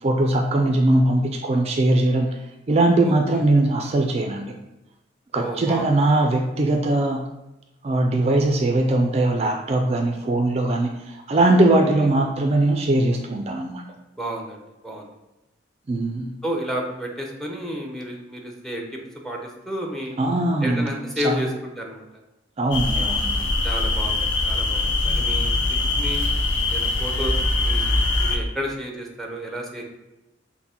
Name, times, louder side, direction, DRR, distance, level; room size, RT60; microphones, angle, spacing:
voice 1, 0.0-2.4 2.7-4.5 5.3-7.2 7.8-13.8 15.9-16.3 20.2-20.9 21.2-21.4 22.6-23.3, right 2 dB, 35° right, 3 dB, 0.4 m, -20 dB
voice 2, 3.0-3.4 5.3-5.9 12.0-12.1 14.2-15.1 16.4-19.0 19.2-20.1 20.6-22.0 23.6-26.2 26.7-27.9 28.2-29.8, equal, ahead, 1 dB, 0.6 m, -31 dB
sound 1, 22.7-28.4, left 2 dB, 75° left, 0.6 m, -22 dB
5.7 x 2.1 x 4.2 m, 0.97 s
head